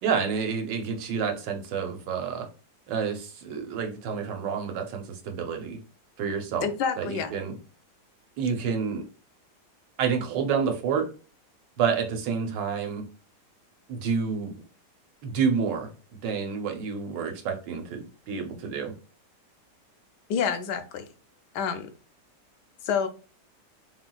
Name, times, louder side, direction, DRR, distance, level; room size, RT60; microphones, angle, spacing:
voice 1, 0.0-2.5 2.9-5.8 6.2-6.7 7.0-7.6 8.4-9.0 10.0-11.0 11.8-13.0 13.9-14.6 15.2-18.9, right 6 dB, 75° right, 4 dB, 1.5 m, -29 dB
voice 2, 6.6-7.4 20.3-21.0 21.5-21.9 22.8-23.1, left 7 dB, 75° left, 8 dB, 1.1 m, -28 dB
4.3 x 4.0 x 2.3 m, 0.35 s
omnidirectional pair, 2.0 m